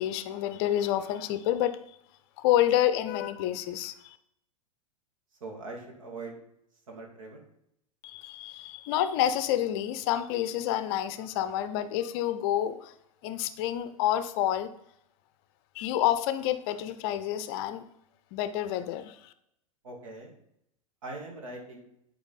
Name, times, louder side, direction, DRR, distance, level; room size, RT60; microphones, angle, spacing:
voice 1, 0.0-1.8 2.4-4.2 8.0-12.9 13.2-14.7 15.7-17.8 18.3-19.3, left 12 dB, 40° left, 12 dB, 0.6 m, -28 dB
voice 2, 5.4-6.3 6.9-7.4 19.8-20.3 21.0-21.9, right 2 dB, 60° right, 1 dB, 2.4 m, -41 dB
10.0 x 4.8 x 4.0 m, 0.76 s
figure-of-eight pair, 90°, 19 cm